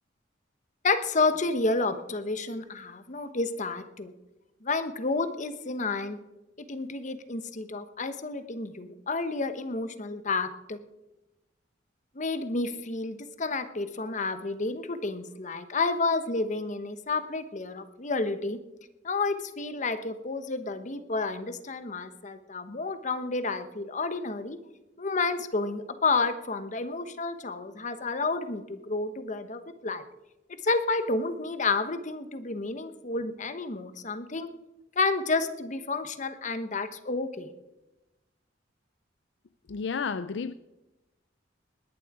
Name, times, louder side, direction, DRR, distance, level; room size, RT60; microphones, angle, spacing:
voice 1, 0.8-4.1 4.6-6.2 6.7-10.8 12.1-18.6 19.0-24.6 25.0-30.0 30.6-34.5 35.0-37.5, left 3 dB, 40° left, 1.0 m, -30 dB
voice 2, 39.7-40.5, left 5 dB, 70° left, 0.5 m, -31 dB
19.5 x 11.0 x 4.8 m
head